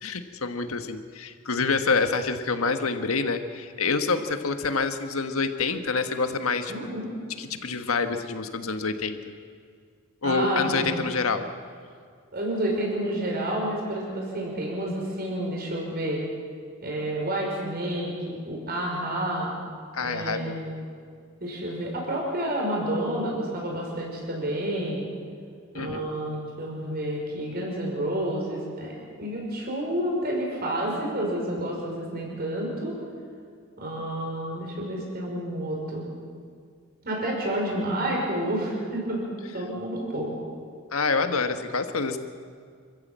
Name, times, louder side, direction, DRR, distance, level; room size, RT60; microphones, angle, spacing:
voice 1, 0.0-7.0 7.4-9.2 10.2-11.5 19.9-20.6 25.7-26.1 40.9-42.2, left 4 dB, 90° left, 7 dB, 1.5 m, -27 dB
voice 2, 6.7-7.1 10.2-11.1 12.3-16.2 16.8-19.5 20.0-20.7 21.4-25.1 25.7-28.9 29.2-32.9 33.8-36.1 37.0-39.2 39.5-40.3, right 1 dB, 45° right, -2 dB, 5.6 m, -29 dB
27.0 x 15.0 x 7.6 m, 2.1 s
head